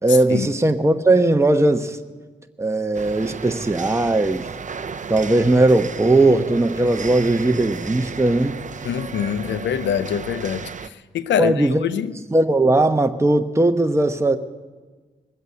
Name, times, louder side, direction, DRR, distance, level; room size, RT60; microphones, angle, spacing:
voice 1, 0.0-2.0 2.6-4.5 5.1-8.6 11.4-11.9 12.2-14.4, right 2 dB, 15° right, 1.0 m, -18 dB
sound 1, 2.9-10.9, right 5 dB, 45° right, 0.7 m, -34 dB
voice 2, 8.8-10.7 11.1-12.1, left 9 dB, 80° left, 0.7 m, -24 dB
20.0 x 8.0 x 7.8 m
supercardioid pair, 40°, 18 cm